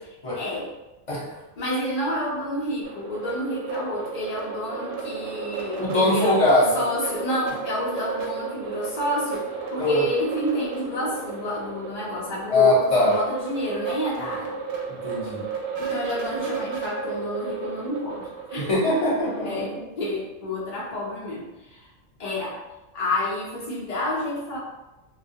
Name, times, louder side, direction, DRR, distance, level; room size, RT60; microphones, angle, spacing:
voice 1, 0.3-0.7 1.6-14.6 15.8-18.7 19.4-21.9 22.2-22.6 22.9-24.6, left 1 dB, 70° left, -6 dB, 0.3 m, -29 dB
sound 1, 2.8-19.5, right 5 dB, 85° right, 1.0 m, -34 dB
voice 2, 5.8-6.7 9.8-10.0 12.5-13.1 15.0-15.4 18.6-19.8, left 2 dB, 35° left, -7 dB, 0.7 m, -21 dB
2.2 x 2.2 x 2.7 m, 1.0 s
omnidirectional pair, 1.3 m